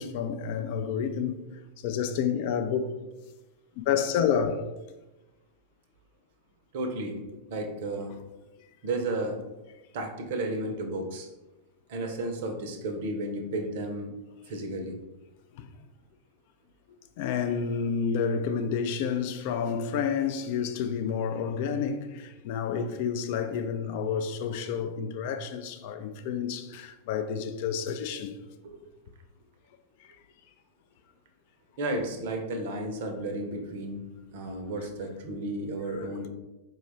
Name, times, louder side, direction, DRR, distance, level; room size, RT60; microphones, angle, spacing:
voice 1, 0.0-1.3 1.8-2.9 3.9-4.6 17.2-28.4, left 7 dB, 50° left, 0.3 m, -29 dB
voice 2, 6.7-7.2 7.5-8.1 8.8-9.4 9.9-11.3 11.9-14.1 14.5-15.0 28.6-28.8 31.8-34.0 34.3-36.3, right 1 dB, 55° right, 0.6 m, -33 dB
4.4 x 2.3 x 3.1 m
figure-of-eight pair, 90°, 0 cm